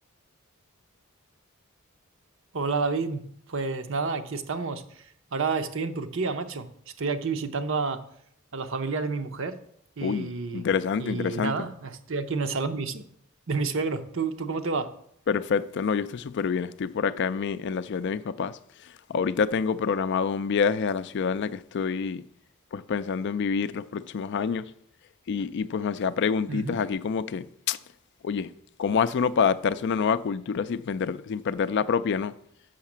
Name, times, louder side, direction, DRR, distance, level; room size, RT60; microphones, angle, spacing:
voice 1, 2.5-5.0 5.3-6.7 7.0-8.0 8.5-9.6 10.0-10.6 11.0-13.0 13.5-14.9 26.5-26.8, right 4 dB, 60° right, 0.7 m, -29 dB
voice 2, 10.0-11.7 15.3-18.5 19.1-22.2 22.7-24.7 25.3-27.8 28.2-28.5 28.8-32.3, left 6 dB, 50° left, 0.3 m, -27 dB
6.4 x 5.7 x 7.2 m
head